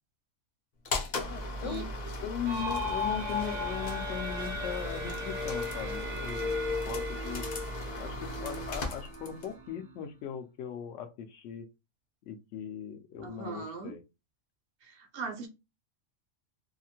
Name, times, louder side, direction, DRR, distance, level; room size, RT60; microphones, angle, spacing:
sound 1, 0.8-9.6, left 1 dB, 50° left, 0.5 m, -38 dB
voice 1, 1.2-1.9 2.2-7.5 8.0-11.7 12.3-14.0, left 8 dB, 70° left, 0.9 m, -39 dB
sound 2, 2.5-10.1, left 3 dB, 70° right, 0.4 m, -36 dB
voice 2, 13.2-13.9 14.8-15.5, right 5 dB, 55° right, 0.8 m, -39 dB
2.7 x 2.5 x 2.8 m
omnidirectional pair, 1.4 m